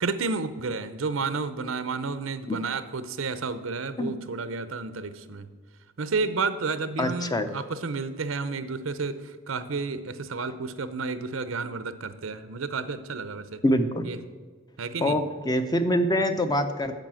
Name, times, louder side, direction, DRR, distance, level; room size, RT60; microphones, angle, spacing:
voice 1, 0.0-5.5 6.0-13.6 14.0-14.2 14.8-15.2, right 4 dB, 80° right, 12 dB, 0.7 m, -31 dB
voice 2, 7.0-7.5 13.6-14.1 15.0-17.0, equal, 20° left, 9 dB, 0.7 m, -25 dB
9.1 x 7.6 x 7.6 m, 1.5 s
head